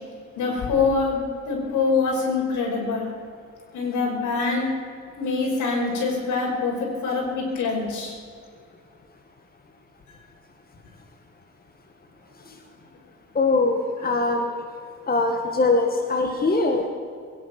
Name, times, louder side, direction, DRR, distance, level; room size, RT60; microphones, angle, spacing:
voice 1, 0.4-3.1 3.7-4.7 5.2-8.2, left 4 dB, 75° left, 0 dB, 5.4 m, -24 dB
voice 2, 13.4-14.5 15.1-16.9, left 3 dB, 30° left, 4 dB, 1.8 m, -22 dB
22.0 x 10.5 x 6.1 m, 2.3 s
cardioid pair, 90°, 30 cm